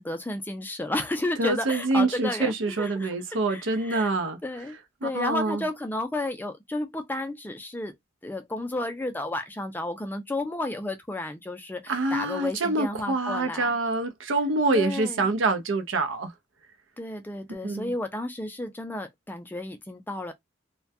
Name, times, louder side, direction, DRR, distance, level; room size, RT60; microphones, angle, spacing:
voice 1, 0.0-4.1 4.4-8.0 8.2-13.7 14.7-15.3 17.0-20.3, left 2 dB, 10° left, 0.3 m, -32 dB
voice 2, 1.4-4.4 5.0-5.6 11.9-16.3 17.6-17.9, right 2 dB, 75° right, 0.5 m, -26 dB
2.2 x 2.2 x 2.5 m
head